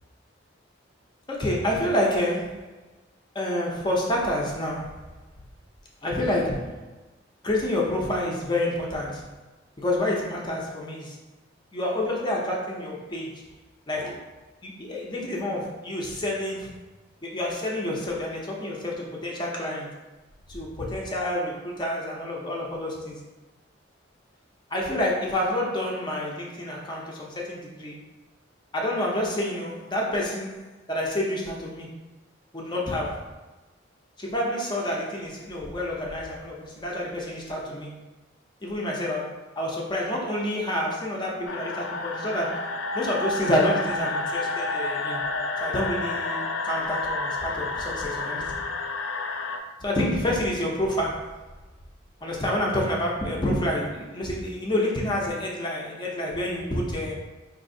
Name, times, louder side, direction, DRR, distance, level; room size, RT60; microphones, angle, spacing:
voice 1, 1.3-2.7 3.3-5.1 6.0-6.9 7.4-9.3 9.8-11.2 11.7-13.5 13.9-14.3 14.6-16.8 17.2-20.0 20.5-23.2 24.7-28.0 28.7-31.9 32.5-33.4 34.2-37.9 38.6-42.7 42.9-45.2 45.6-48.6 49.8-51.5 52.2-57.1, left 1 dB, 25° left, -3 dB, 0.5 m, -28 dB
sound 1, 41.4-49.6, left 3 dB, 80° left, 0.3 m, -30 dB
4.0 x 2.6 x 2.6 m, 1.1 s
head